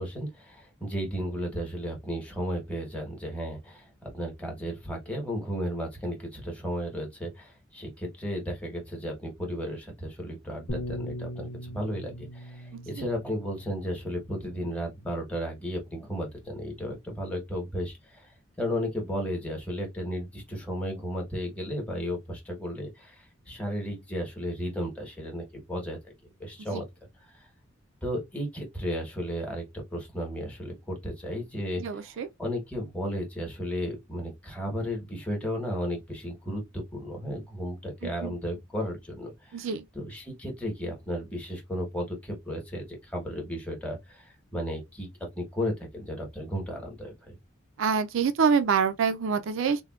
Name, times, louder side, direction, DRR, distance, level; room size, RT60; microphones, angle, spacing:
voice 1, 0.0-18.3 18.6-26.0 26.4-26.8 27.4-27.5 28.0-32.1 32.4-39.7 39.9-45.1 45.4-47.4, equal, 5° left, 1.0 m, -34 dB
Bass guitar, 10.7-15.2 16.0-16.9, equal, 60° left, 1.0 m, -41 dB
voice 2, 12.7-13.1 26.7-26.8 31.8-32.3 38.0-38.3 39.5-39.8 47.8-49.8, right 6 dB, 65° right, 0.4 m, -26 dB
3.5 x 2.2 x 2.3 m
head